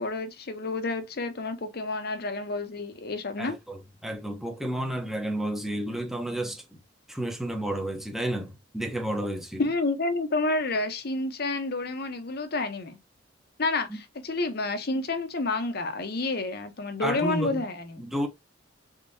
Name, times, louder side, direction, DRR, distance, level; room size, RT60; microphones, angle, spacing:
voice 1, 0.0-3.6 9.6-13.0 13.6-18.0, left 2 dB, 55° left, 0.9 m, -29 dB
voice 2, 3.4-6.8 7.1-9.6 13.9-14.0 17.0-17.6 18.0-18.3, right 1 dB, ahead, 0.8 m, -31 dB
4.0 x 3.7 x 2.7 m
head